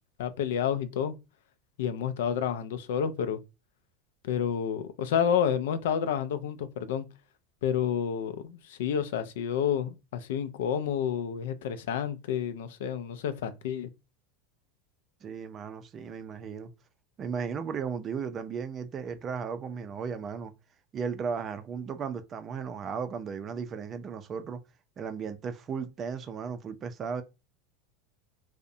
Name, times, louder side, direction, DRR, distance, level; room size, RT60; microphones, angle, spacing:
voice 1, 0.2-1.1 1.8-3.4 4.2-7.1 7.6-13.9, left 8 dB, 80° left, 0.3 m, -29 dB
voice 2, 15.2-16.7 17.2-20.5 20.9-24.6 25.0-27.2, right 6 dB, 35° right, 0.4 m, -35 dB
2.5 x 2.0 x 2.6 m
supercardioid pair, 110°, 0 cm